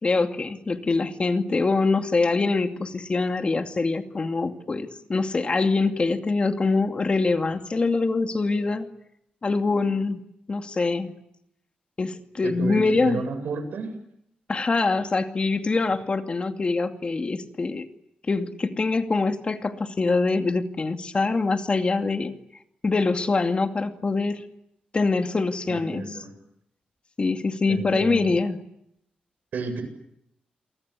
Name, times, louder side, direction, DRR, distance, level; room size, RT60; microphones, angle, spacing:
voice 1, 0.0-8.9 9.4-10.2 10.5-11.1 12.0-13.2 14.5-17.8 18.3-22.3 22.8-24.4 24.9-26.0 27.2-28.6, left 3 dB, 35° left, 7 dB, 2.5 m, -24 dB
voice 2, 12.4-13.9 25.7-26.3 27.7-28.4 29.5-29.8, right 4 dB, 75° right, 8 dB, 7.9 m, -31 dB
29.5 x 23.5 x 8.4 m, 0.79 s
cardioid pair, 80°, 3 cm